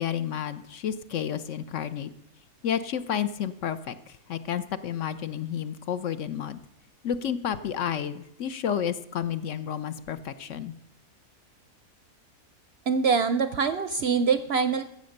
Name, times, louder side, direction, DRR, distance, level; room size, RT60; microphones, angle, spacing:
voice 1, 0.0-2.1 2.6-6.6 7.0-10.7, left 9 dB, 65° left, 13 dB, 0.9 m, -31 dB
voice 2, 12.9-14.8, right 5 dB, 60° right, 12 dB, 0.7 m, -24 dB
13.5 x 7.9 x 6.5 m, 0.80 s
omnidirectional pair, 1.6 m